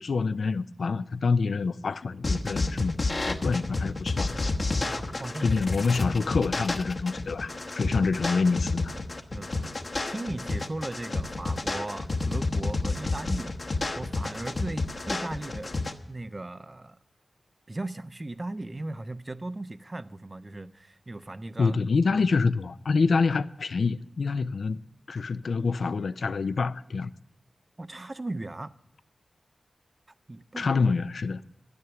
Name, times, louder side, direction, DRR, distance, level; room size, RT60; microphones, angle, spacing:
voice 1, 0.0-3.0 3.2-4.4 5.4-8.9 21.6-24.8 25.1-27.1 30.6-31.4, left 4 dB, 85° left, 0.4 m, -26 dB
sound 1, 2.2-15.9, left 3 dB, 50° left, 1.1 m, -30 dB
voice 2, 4.8-5.4 7.9-8.0 9.3-9.7 10.0-13.5 14.0-15.7 16.1-17.0 17.7-21.8 22.1-22.3 27.8-28.7 30.3-30.7, right 2 dB, 30° right, 0.5 m, -37 dB
12.5 x 11.0 x 6.9 m
wide cardioid pair, 100°, 0 cm